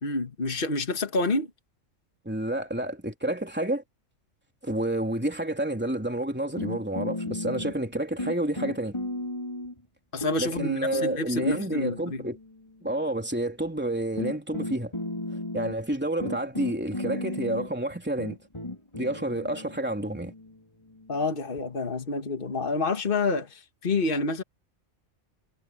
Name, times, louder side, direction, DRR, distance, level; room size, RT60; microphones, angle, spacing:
voice 1, 0.0-1.5 10.1-12.2 21.1-24.4, left 3 dB, 45° left, 1.9 m, -28 dB
voice 2, 2.3-3.8 4.6-9.0 10.4-12.4 12.8-14.9 15.5-18.4 18.9-20.3, right 1 dB, 10° right, 3.4 m, -29 dB
sound 1, 6.6-9.8 10.2-12.7 13.6-13.7 14.2-21.7, left 1 dB, 20° left, 3.9 m, -35 dB
omnidirectional pair, 1.3 m